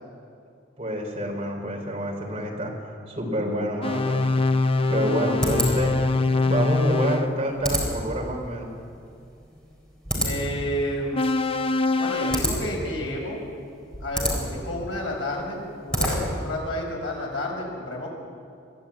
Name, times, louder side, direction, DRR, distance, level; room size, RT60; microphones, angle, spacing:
voice 1, 0.8-4.2 4.9-6.0 6.4-8.7, equal, 30° right, 0 dB, 3.8 m, -27 dB
sound 1, 3.8-7.3 11.1-12.4, left 3 dB, 30° left, 0.6 m, -23 dB
sound 2, 4.3-16.5, equal, 5° left, 4.0 m, -31 dB
voice 2, 10.2-11.2 12.0-13.4 14.0-18.1, left 1 dB, 75° left, -1 dB, 5.7 m, -30 dB
23.0 x 13.0 x 8.6 m, 2.4 s
head